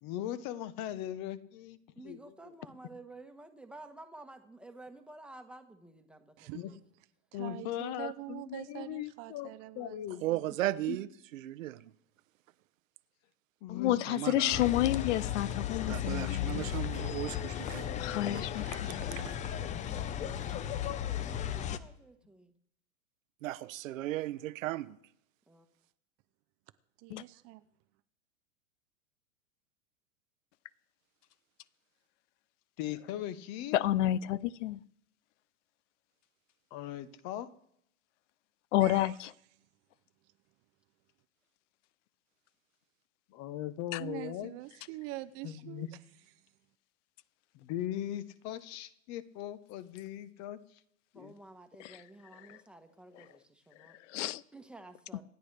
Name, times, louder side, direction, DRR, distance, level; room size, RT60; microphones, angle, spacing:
voice 1, 0.0-1.8 2.0-2.2 6.5-6.7 7.3-10.2 10.9-11.0 13.6-14.3 32.8-33.8 36.7-37.5 43.3-44.5 45.4-45.9 47.5-50.6 51.1-51.3, left 12 dB, 40° left, 0.9 m, -39 dB
voice 2, 2.0-6.8 19.8-22.5 25.5-25.7 51.1-54.0 54.5-55.2, right 2 dB, 5° right, 1.2 m, -52 dB
voice 3, 7.3-10.4 27.0-27.6 38.8-39.2 44.0-45.9, right 18 dB, 35° right, 0.6 m, -44 dB
voice 4, 10.2-11.9 14.1-14.6 15.9-18.0 18.3-19.3 23.4-25.0, right 15 dB, 70° right, 0.8 m, -36 dB
voice 5, 13.7-16.7 18.0-19.1 27.1-27.2 33.7-34.8 38.7-39.3 43.9-44.0 51.8-52.0 52.5-52.6 54.1-54.4, left 14 dB, 60° left, 0.6 m, -30 dB
sound 1, 14.5-21.8, left 10 dB, 20° left, 0.5 m, -35 dB
26.5 x 10.0 x 3.3 m
hypercardioid pair, 125°, 40 cm